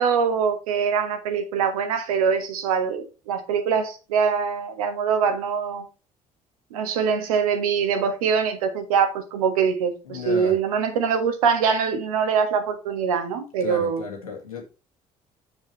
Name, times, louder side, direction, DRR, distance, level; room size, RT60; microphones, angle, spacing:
voice 1, 0.0-5.9 6.7-14.0, right 6 dB, 80° right, 1.4 m, -23 dB
voice 2, 10.0-10.5 13.6-14.6, left 5 dB, 90° left, 2.0 m, -34 dB
7.6 x 7.3 x 3.2 m
hypercardioid pair, 50°, 18 cm